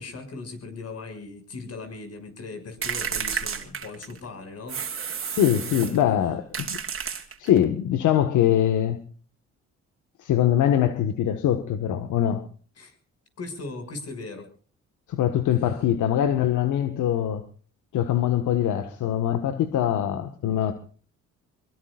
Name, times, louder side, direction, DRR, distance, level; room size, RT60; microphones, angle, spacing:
voice 1, 0.0-5.3 5.6-6.1 12.8-13.0 13.4-14.5, left 3 dB, 55° left, 6.7 m, -39 dB
sound 1, 2.8-4.2 4.7-6.0 6.5-7.6, right 7 dB, 45° right, 3.2 m, -31 dB
voice 2, 5.2-6.8 7.1-9.0 10.2-12.5 15.1-17.4 17.9-20.7, left 10 dB, 80° left, 1.7 m, -23 dB
25.0 x 22.5 x 2.5 m
cardioid pair, 90°, 30 cm